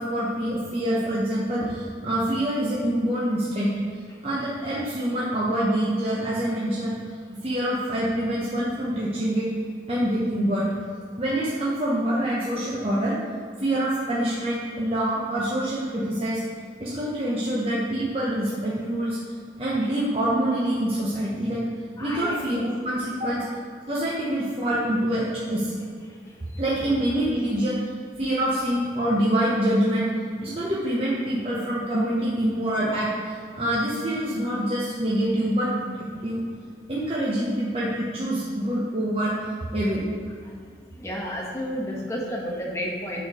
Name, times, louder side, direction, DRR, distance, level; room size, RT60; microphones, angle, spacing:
voice 1, 0.0-3.7 4.2-7.0 7.4-9.4 9.9-10.7 11.2-13.2 13.6-16.4 16.8-19.2 19.6-21.6 22.0-23.4 23.9-25.7 26.6-27.7 28.2-30.1 30.4-36.4 36.9-39.3 39.7-40.0, right 1 dB, 35° right, -8 dB, 1.0 m, -25 dB
voice 2, 22.0-22.4 41.0-43.2, equal, 15° left, -3 dB, 1.0 m, -31 dB
6.6 x 4.6 x 4.9 m, 2.1 s
head